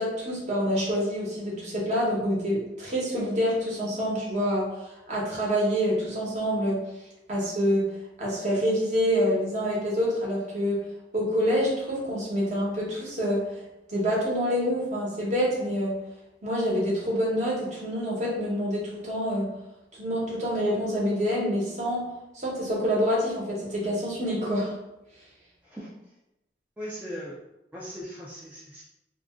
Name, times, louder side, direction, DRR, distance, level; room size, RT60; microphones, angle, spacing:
voice 1, 0.0-6.8 7.3-7.9 8.2-10.8 11.1-13.5 13.9-16.0 16.4-19.5 20.0-22.1 22.3-24.7, equal, 45° right, -5 dB, 1.0 m, -27 dB
voice 2, 26.8-27.4 27.7-28.8, equal, 10° right, -7 dB, 0.4 m, -38 dB
2.5 x 2.2 x 3.5 m, 0.93 s
head